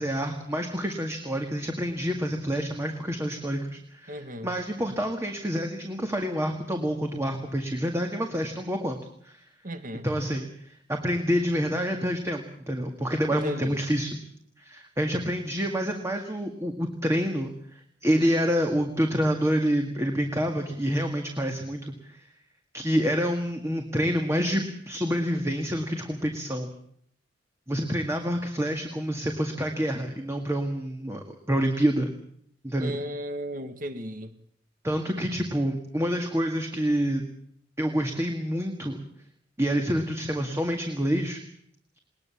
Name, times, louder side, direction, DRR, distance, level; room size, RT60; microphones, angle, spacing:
voice 1, 0.0-9.0 9.2-9.4 10.0-14.2 14.6-22.3 22.7-26.7 27.7-32.1 32.6-32.9 34.8-37.2 37.8-39.0 39.6-41.4, equal, 15° right, 1.9 m, -27 dB
voice 2, 4.1-4.5 9.6-10.1 13.3-13.8 32.8-34.4, equal, 45° right, 1.8 m, -35 dB
20.5 x 20.0 x 7.2 m
head